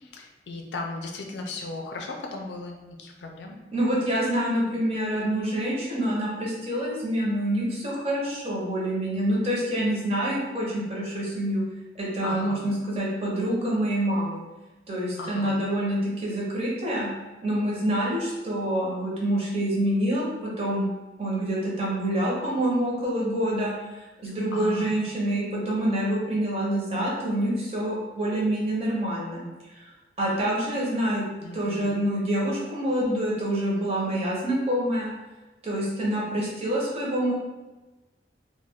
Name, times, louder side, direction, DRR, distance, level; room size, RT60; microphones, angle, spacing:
voice 1, 0.0-3.6 12.2-12.6 15.2-15.6 24.2-24.9 31.4-32.0, left 3 dB, 80° left, 2 dB, 0.4 m, -37 dB
voice 2, 3.7-11.6 12.0-14.4 14.9-17.1 17.4-20.9 21.2-29.9 30.2-31.2 31.5-35.1 35.6-37.3, right 1 dB, 35° right, -5 dB, 0.7 m, -26 dB
2.3 x 2.2 x 3.4 m, 1.1 s
head